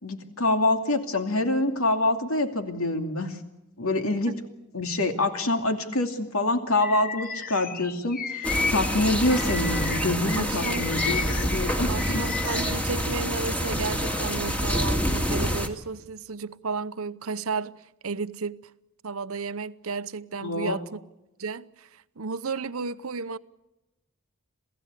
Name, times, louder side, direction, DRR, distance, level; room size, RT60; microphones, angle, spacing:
voice 1, 0.0-3.4 3.8-4.4 4.7-12.2 20.4-20.8, left 2 dB, 70° left, 2.7 m, -26 dB
Bird vocalization bird call bird song, 6.8-10.1 10.5-12.8, left 5 dB, 40° left, 0.9 m, -33 dB
sound 1, 8.4-15.7, equal, 5° left, 2.1 m, -27 dB
voice 2, 10.4-10.9 11.9-18.7 19.0-21.0 21.4-23.4, right 4 dB, 70° right, 0.8 m, -33 dB
27.5 x 16.5 x 8.3 m
head